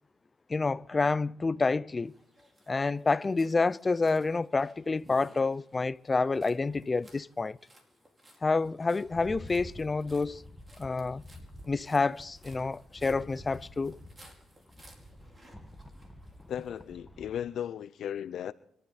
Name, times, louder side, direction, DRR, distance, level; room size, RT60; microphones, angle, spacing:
voice 1, 0.5-2.1 2.7-7.6 8.4-10.4 10.8-11.2 11.6-14.0, left 3 dB, 25° left, 0.5 m, -28 dB
sound 1, 2.1-16.8, right 1 dB, 25° right, 4.8 m, -60 dB
Rattle, 9.0-17.4, left 1 dB, 5° left, 1.8 m, -49 dB
voice 2, 16.5-18.5, left 9 dB, 70° left, 0.6 m, -36 dB
25.5 x 12.5 x 4.2 m
cardioid pair, 90°, 0 cm